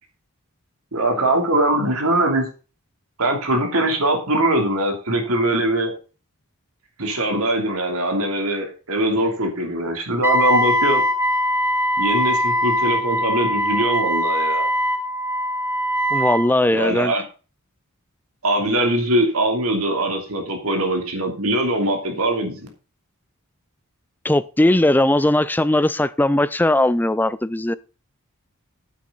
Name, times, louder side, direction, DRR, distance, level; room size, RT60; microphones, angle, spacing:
voice 1, 0.9-2.5 3.2-5.9 7.0-11.0 12.0-14.7 16.7-17.2 18.4-22.7, right 1 dB, 70° right, 3 dB, 3.0 m, -21 dB
Wind instrument woodwind instrument, 10.2-16.5, equal, 10° right, 1.1 m, -21 dB
voice 2, 16.1-17.1 24.2-27.7, left 1 dB, 10° left, 16 dB, 0.4 m, -18 dB
9.8 x 8.4 x 3.9 m, 0.34 s
head